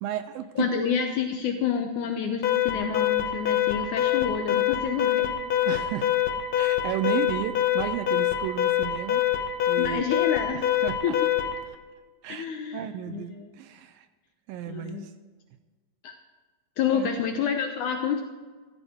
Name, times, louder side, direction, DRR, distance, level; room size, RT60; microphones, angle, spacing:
voice 1, 0.0-0.9 5.7-6.3 6.6-9.4 9.7-10.1 10.5-11.2 12.2-12.5 12.7-14.1 14.5-15.1 16.9-17.2, right 11 dB, 80° right, 10 dB, 2.1 m, -33 dB
voice 2, 0.6-5.3 9.8-10.7 11.0-11.2 12.3-13.5 14.7-15.1 16.0-16.1 16.8-18.2, left 7 dB, 90° left, 5 dB, 1.7 m, -28 dB
Alarm, 2.4-11.6, left 11 dB, 65° left, 1.8 m, -25 dB
15.5 x 14.0 x 3.6 m, 1.4 s
omnidirectional pair, 4.6 m